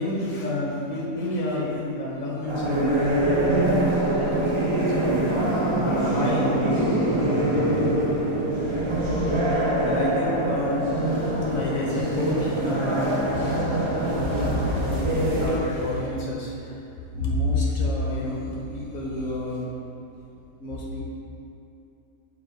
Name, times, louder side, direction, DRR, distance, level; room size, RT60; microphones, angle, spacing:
voice 1, 0.0-5.5 5.8-7.8 9.4-15.1 15.4-16.7 17.1-19.7 20.6-21.0, left 1 dB, 55° left, -4 dB, 1.5 m, -29 dB
sound 1, 2.5-15.6, right 1 dB, 35° right, 0.4 m, -24 dB
6.8 x 3.5 x 5.2 m, 2.7 s
omnidirectional pair, 1.8 m